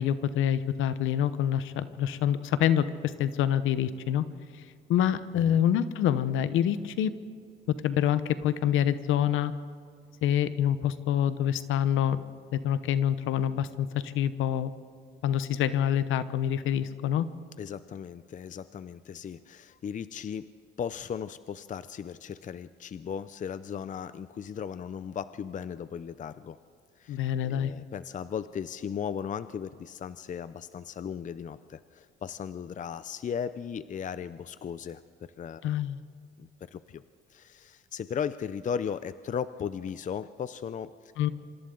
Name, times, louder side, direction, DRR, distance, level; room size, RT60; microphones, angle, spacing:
voice 1, 0.0-4.2 4.5-4.6 4.9-7.1 7.7-9.5 10.2-12.2 12.5-14.7 15.2-17.3 27.1-27.7 35.6-36.0 41.2-41.3, left 10 dB, 85° left, 14 dB, 0.9 m, -26 dB
voice 2, 17.6-20.5 20.8-26.6 27.0-27.2 27.4-35.6 36.4-37.0 37.3-41.3, left 7 dB, 40° left, 14 dB, 0.5 m, -36 dB
26.5 x 25.0 x 3.9 m, 2.3 s
cardioid pair, 90°, 20 cm